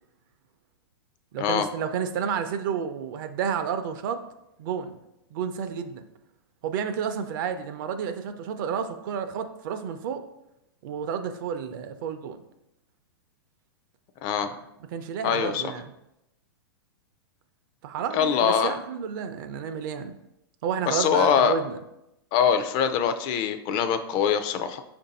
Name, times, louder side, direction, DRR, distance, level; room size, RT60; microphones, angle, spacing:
voice 1, 1.3-4.2 4.6-5.0 5.3-6.0 6.6-10.2 10.8-12.4 14.9-15.9 17.8-20.2 20.6-21.8, right 7 dB, 55° right, 8 dB, 0.5 m, -31 dB
voice 2, 15.2-15.6 18.1-18.8 20.9-21.5 22.3-24.8, left 7 dB, 35° left, 10 dB, 0.4 m, -23 dB
5.1 x 2.6 x 4.0 m, 0.85 s
hypercardioid pair, 130°, 13 cm